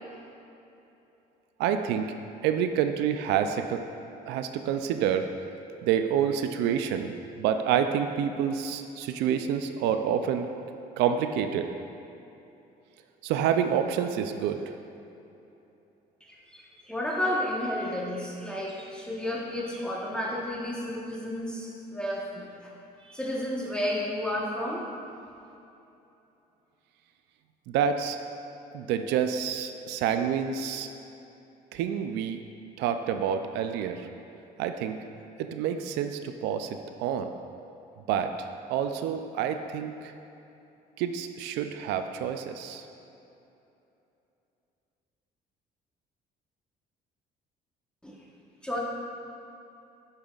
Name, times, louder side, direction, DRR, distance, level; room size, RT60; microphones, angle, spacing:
voice 1, 1.6-2.1 2.4-3.8 4.3-5.3 5.8-10.5 11.0-11.7 13.2-14.6 27.7-28.2 28.7-30.9 31.7-32.4 32.8-34.1 34.6-35.0 35.4-36.7 37.0-37.3 38.1-40.1 41.0-42.9, right 8 dB, 90° right, 7 dB, 0.4 m, -28 dB
voice 2, 16.5-22.7 23.0-24.8 48.0-48.2 48.6-48.8, left 1 dB, 5° left, -4 dB, 1.1 m, -32 dB
8.4 x 5.7 x 2.4 m, 2.9 s
cardioid pair, 110°, 17 cm